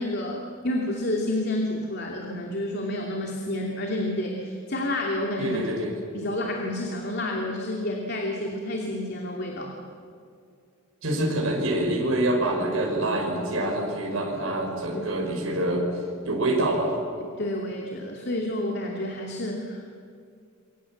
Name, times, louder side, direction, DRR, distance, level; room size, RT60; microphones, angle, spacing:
voice 1, 0.0-5.7 6.1-9.7 14.9-15.2 17.4-19.9, left 1 dB, 50° left, 0 dB, 2.8 m, -29 dB
voice 2, 5.4-5.9 11.0-15.9 16.3-16.9, right 1 dB, 75° right, -1 dB, 5.3 m, -26 dB
28.0 x 25.0 x 7.3 m, 2.3 s
head